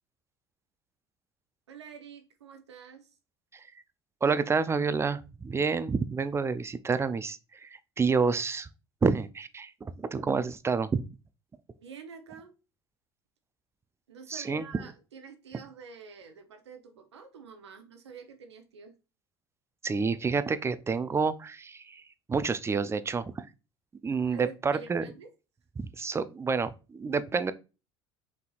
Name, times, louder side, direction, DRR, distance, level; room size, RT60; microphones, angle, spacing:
voice 1, 1.7-3.1 11.7-12.5 14.1-19.0 24.3-25.3, right 5 dB, 85° right, 0.8 m, -48 dB
voice 2, 4.2-7.7 8.0-8.7 9.0-11.0 14.3-14.6 19.8-22.0 22.3-23.5 24.0-25.0 25.8-27.5, right 5 dB, 20° right, 0.4 m, -29 dB
5.6 x 3.5 x 2.4 m
hypercardioid pair, 70°, 14 cm